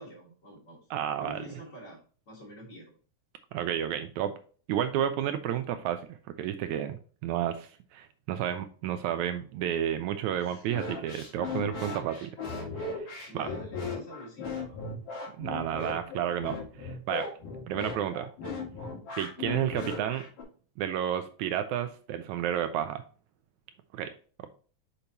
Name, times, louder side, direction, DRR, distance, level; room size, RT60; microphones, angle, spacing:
voice 1, 0.0-0.8 1.2-2.0 2.3-3.0 10.3-10.8 13.3-14.8, equal, 35° left, -3 dB, 3.1 m, -47 dB
voice 2, 0.9-1.4 3.5-4.3 4.7-6.0 6.4-12.4 12.8-13.1 13.3-13.5 15.4-17.3 17.7-18.3 19.1-20.3 20.8-23.0 23.9-24.1, right 10 dB, 80° right, 9 dB, 1.8 m, -31 dB
sound 1, 10.7-20.4, left 4 dB, 80° left, 3.7 m, -37 dB
6.7 x 5.8 x 2.9 m, 0.40 s
omnidirectional pair, 3.7 m